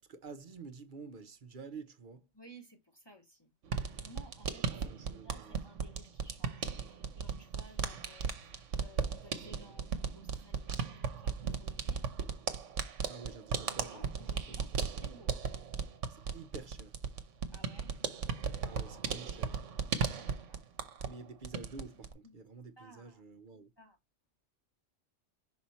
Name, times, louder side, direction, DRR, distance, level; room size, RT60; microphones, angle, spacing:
voice 1, 0.0-2.3 4.7-5.7 13.1-14.8 16.1-17.0 18.6-19.6 21.1-23.7, right 4 dB, 45° right, 0.9 m, -49 dB
voice 2, 2.3-3.5 3.9-4.7 5.1-12.0 13.6-15.4 17.5-17.9 18.2-18.5 20.5-20.6 22.2-22.4 22.8-23.2 23.8-24.0, right 1 dB, 20° left, 1.2 m, -57 dB
sound 1, 3.6-21.2 21.4-22.1, right 6 dB, 75° right, 1.2 m, -36 dB
5.9 x 4.2 x 4.1 m
omnidirectional pair, 1.3 m